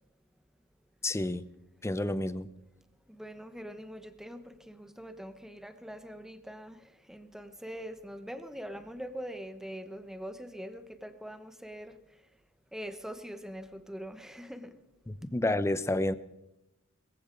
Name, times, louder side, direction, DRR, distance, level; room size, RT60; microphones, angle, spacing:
voice 1, 1.0-1.4 1.8-2.5 15.1-16.2, left 1 dB, 15° left, 0.6 m, -30 dB
voice 2, 3.1-12.0 12.7-14.7, equal, ahead, 1.0 m, -43 dB
20.0 x 15.0 x 3.9 m
head